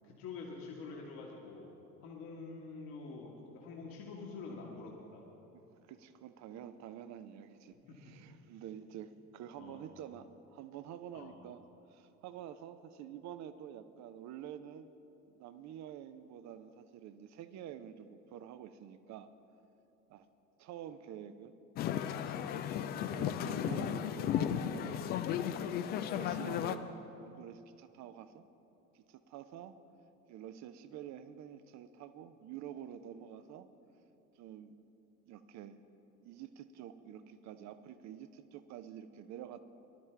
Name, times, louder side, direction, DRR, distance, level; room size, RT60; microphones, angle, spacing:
voice 1, 0.0-1.7 2.0-5.2 7.9-8.0 9.6-9.8 11.1-11.3, left 4 dB, 50° left, -2 dB, 1.6 m, -46 dB
voice 2, 5.9-11.6 11.9-14.9 15.3-19.3 20.1-20.3 20.6-21.5 22.2-25.2 26.1-26.9 27.2-28.5 28.9-29.7 30.3-33.7 34.4-34.8 35.3-35.8 36.2-39.6, right 10 dB, 40° right, 12 dB, 0.6 m, -48 dB
sound 1, 21.8-26.8, left 10 dB, 25° left, 0.3 m, -35 dB
19.0 x 12.0 x 3.4 m, 3.0 s
figure-of-eight pair, 65°, 46 cm